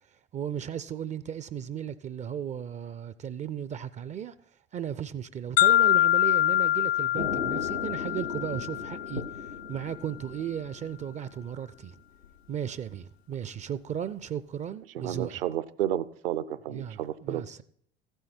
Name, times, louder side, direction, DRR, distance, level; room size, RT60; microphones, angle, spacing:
voice 1, 0.1-4.3 4.7-12.0 12.5-15.4 16.7-17.6, right 9 dB, 25° right, 0.4 m, -36 dB
sound 1, 5.6-9.5, left 14 dB, 40° left, 0.4 m, -25 dB
sound 2, 7.1-11.7 12.0-12.4, left 4 dB, 85° left, 0.6 m, -38 dB
voice 2, 14.9-17.6, right 11 dB, 70° right, 0.6 m, -32 dB
14.5 x 8.0 x 4.3 m
figure-of-eight pair, 65°, 30 cm